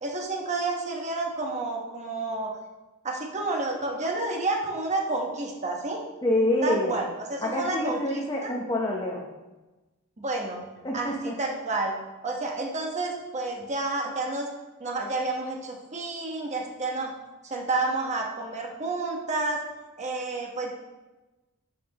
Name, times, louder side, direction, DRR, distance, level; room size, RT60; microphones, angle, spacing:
voice 1, 0.0-2.5 3.0-6.0 6.6-8.5 10.2-10.6 10.9-12.0 12.2-14.5 14.8-17.1 17.4-19.6 20.0-20.7, right 2 dB, 30° right, 0 dB, 1.2 m, -30 dB
voice 2, 6.2-6.9 7.4-9.3 10.8-11.3, left 1 dB, 20° left, -3 dB, 0.9 m, -26 dB
11.0 x 6.0 x 3.0 m, 1.1 s
head